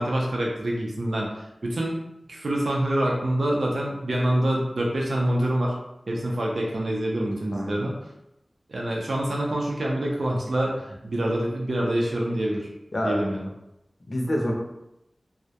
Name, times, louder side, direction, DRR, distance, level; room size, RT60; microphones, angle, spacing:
voice 1, 0.0-2.0 2.3-5.7 6.1-7.9 8.7-12.7 13.0-13.5, right 1 dB, 80° right, -2 dB, 0.4 m, -26 dB
voice 2, 7.5-7.8 12.9-13.2 14.1-14.5, left 1 dB, 55° left, 0 dB, 0.5 m, -27 dB
2.2 x 2.0 x 2.7 m, 0.87 s
wide cardioid pair, 50°, 0 cm